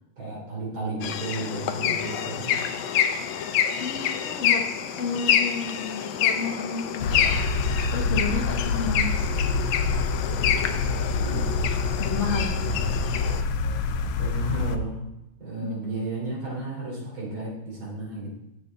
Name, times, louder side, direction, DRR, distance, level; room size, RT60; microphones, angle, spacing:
voice 1, 0.2-2.5 11.2-11.6 12.6-12.9 14.2-15.1 15.4-18.4, right 2 dB, 75° right, -5 dB, 3.7 m, -33 dB
sound 1, 1.0-13.4, left 9 dB, 75° left, 1.3 m, -27 dB
voice 2, 3.8-4.7 5.0-7.4 7.9-9.1 12.0-12.6 15.6-15.9, left 5 dB, 45° left, 1 dB, 1.2 m, -31 dB
sound 2, 7.0-14.8, left 4 dB, 90° left, 1.5 m, -26 dB
8.1 x 7.2 x 3.8 m, 0.92 s
omnidirectional pair, 2.3 m